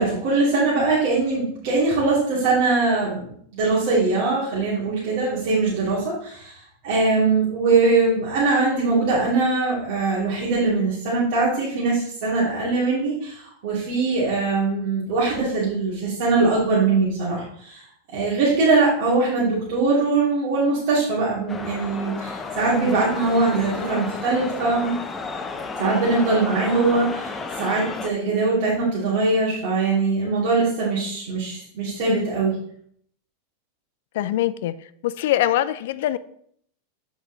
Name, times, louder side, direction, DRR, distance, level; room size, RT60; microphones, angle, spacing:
voice 1, 0.0-17.8 18.1-25.0 25.8-32.5, right 3 dB, 55° right, -7 dB, 2.6 m, -22 dB
sound 1, 21.5-28.1, left 4 dB, 15° left, 0.7 m, -32 dB
voice 2, 34.1-34.7 35.0-36.2, left 13 dB, 70° left, 15 dB, 0.4 m, -23 dB
8.1 x 5.0 x 4.0 m, 0.64 s
supercardioid pair, 140°, 0 cm